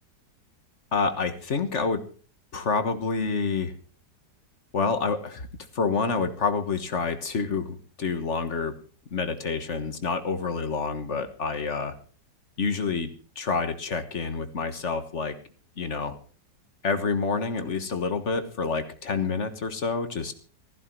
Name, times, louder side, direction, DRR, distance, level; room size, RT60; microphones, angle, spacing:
voice 1, 0.9-2.1 2.5-3.7 4.7-5.5 5.7-8.8 9.1-11.9 12.6-15.4 15.8-16.2 16.8-20.3, left 4 dB, 45° left, 10 dB, 1.6 m, -28 dB
15.5 x 15.0 x 4.6 m, 0.40 s
omnidirectional pair, 1.9 m